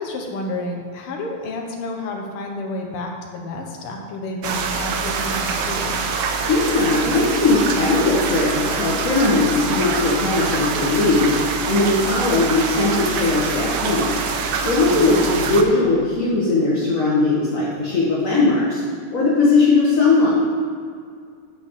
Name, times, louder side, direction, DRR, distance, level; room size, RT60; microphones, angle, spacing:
voice 1, 0.0-6.0 14.8-15.1, left 2 dB, 90° left, 1 dB, 2.0 m, -30 dB
sound 1, 4.4-15.6, right 5 dB, 65° right, 1.3 m, -25 dB
voice 2, 6.5-14.2 14.6-18.8 19.1-20.3, left 3 dB, 40° left, -7 dB, 1.6 m, -19 dB
8.3 x 5.2 x 7.3 m, 2.2 s
omnidirectional pair, 2.3 m